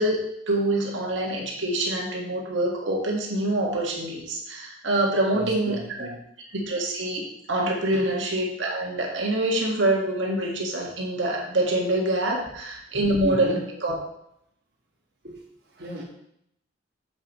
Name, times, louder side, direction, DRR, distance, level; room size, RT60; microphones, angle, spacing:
voice 1, 0.0-6.1 6.5-14.0, right 1 dB, 80° right, -1 dB, 1.8 m, -25 dB
voice 2, 5.3-6.2 7.9-8.0 13.2-13.7 15.2-15.4 15.7-16.0, equal, 55° right, -3 dB, 1.4 m, -33 dB
9.0 x 7.2 x 3.1 m, 0.75 s
head